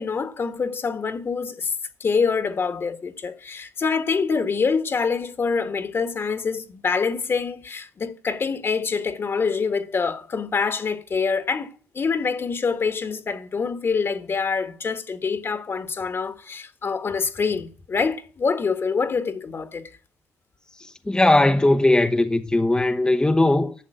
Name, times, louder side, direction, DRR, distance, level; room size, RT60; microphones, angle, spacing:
voice 1, 0.0-1.7 2.0-20.0, left 5 dB, 50° left, 1.7 m, -25 dB
voice 2, 20.8-23.7, left 2 dB, 15° left, 1.0 m, -19 dB
11.5 x 7.1 x 8.0 m
cardioid pair, 65°, 5 cm